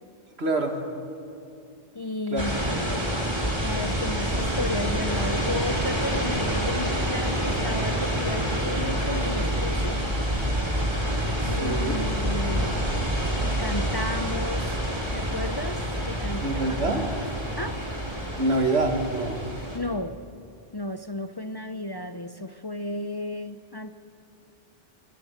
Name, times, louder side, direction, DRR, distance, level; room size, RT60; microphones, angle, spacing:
voice 1, 0.4-0.8 2.3-2.4 2.7-3.1 11.4-11.9 16.4-17.0 18.4-19.4, right 2 dB, 90° right, 4 dB, 2.4 m, -26 dB
voice 2, 1.9-3.0 3.6-10.0 11.4-13.0 13.4-14.8 15.1-16.5 16.9-17.1 17.6-17.8 19.7-20.2 20.7-23.9, left 2 dB, 30° left, 10 dB, 0.5 m, -33 dB
sound 1, 2.4-19.8, equal, 25° right, 3.3 m, -27 dB
22.0 x 18.0 x 9.2 m, 2.5 s
omnidirectional pair, 1.1 m